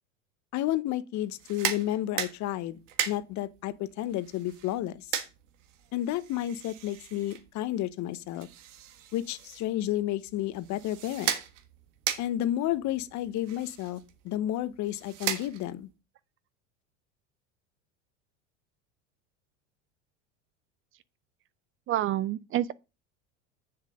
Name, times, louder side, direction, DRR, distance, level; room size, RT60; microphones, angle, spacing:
voice 1, 0.5-2.8 3.1-5.1 5.9-8.5 9.1-11.4 12.2-15.9, left 13 dB, 50° left, 1.0 m, -31 dB
sound 1, 1.3-15.9, right 10 dB, 75° right, 1.6 m, -38 dB
voice 2, 21.9-22.7, right 13 dB, 35° right, 0.5 m, -28 dB
7.4 x 6.9 x 5.1 m
hypercardioid pair, 95°, 37 cm